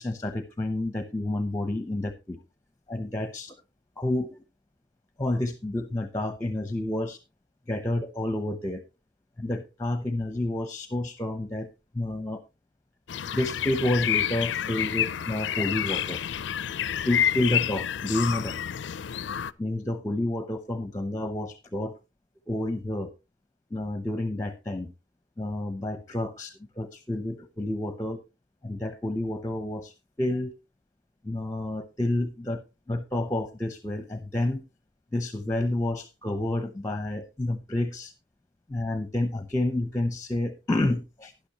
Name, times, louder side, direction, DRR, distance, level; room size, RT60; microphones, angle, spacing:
voice 1, 0.0-2.4 2.9-3.5 4.0-4.4 5.2-7.2 7.7-8.8 9.4-11.7 11.9-12.4 13.3-16.2 17.0-18.5 19.6-21.9 22.5-23.1 23.7-24.9 25.4-28.2 28.6-30.5 31.2-32.6 32.9-34.6 35.1-38.1 38.7-41.3, left 1 dB, 15° left, 11 dB, 0.8 m, -29 dB
sound 1, 13.1-19.5, left 10 dB, 70° left, 0.4 m, -29 dB
12.0 x 10.5 x 3.0 m, 0.25 s
head